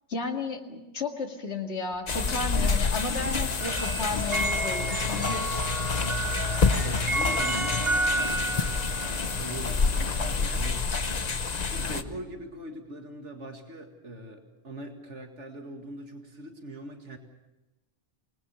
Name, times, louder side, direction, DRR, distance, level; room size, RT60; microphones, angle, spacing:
voice 1, 0.1-5.4, left 3 dB, 65° left, 3 dB, 2.5 m, -33 dB
sound 1, 1.9-12.2, left 1 dB, 30° right, 4.6 m, -52 dB
sound 2, 2.1-12.0, left 4 dB, 40° left, 1.0 m, -28 dB
sound 3, 3.6-10.8, right 2 dB, 55° right, 1.7 m, -32 dB
voice 2, 6.5-10.8 11.6-17.2, right 1 dB, 80° right, 3 dB, 2.4 m, -42 dB
26.0 x 20.0 x 7.0 m, 1.0 s
omnidirectional pair, 1.2 m